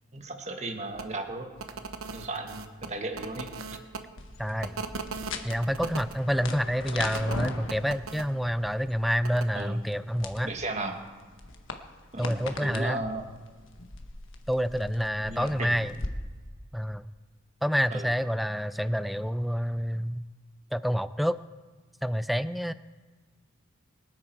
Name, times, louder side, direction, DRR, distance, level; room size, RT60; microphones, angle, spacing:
voice 1, 0.1-1.5 2.1-3.5 9.5-9.8 10.4-11.0 12.1-13.3 15.2-15.8 17.9-18.1, right 2 dB, 35° right, 4 dB, 1.7 m, -35 dB
sound 1, 0.9-1.1 1.6-4.0 4.6-6.1 7.1-8.2 9.2-9.4, right 4 dB, 85° right, 1.1 m, -38 dB
sound 2, 4.2-16.1, left 3 dB, 65° left, 1.3 m, -41 dB
voice 2, 4.4-4.8 5.4-10.5 12.2-13.0 14.5-15.9 16.7-17.0 17.6-20.2 20.7-21.4 22.0-22.7, equal, ahead, 14 dB, 0.4 m, -28 dB
24.0 x 9.7 x 4.6 m, 1.4 s
head